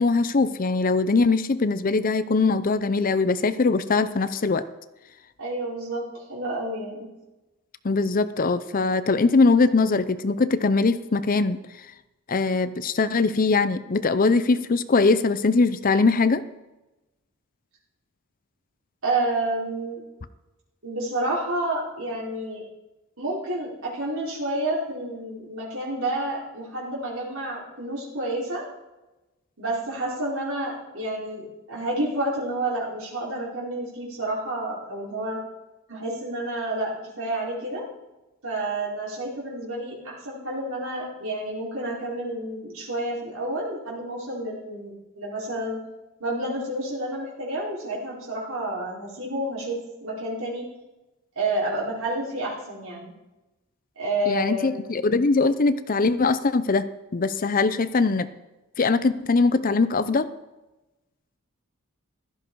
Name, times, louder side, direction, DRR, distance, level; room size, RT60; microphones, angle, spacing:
voice 1, 0.0-4.6 7.8-11.6 12.3-16.4 54.3-56.9 57.1-58.3 58.8-60.3, left 3 dB, 40° left, 13 dB, 0.6 m, -21 dB
voice 2, 5.4-7.1 19.0-20.0 20.8-22.6 23.2-28.6 29.6-35.4 35.9-36.9 37.2-37.8 38.4-45.8 46.2-50.7 51.4-53.1 54.0-55.0, right 1 dB, 70° right, -5 dB, 4.6 m, -29 dB
16.0 x 13.0 x 4.7 m, 1.0 s
head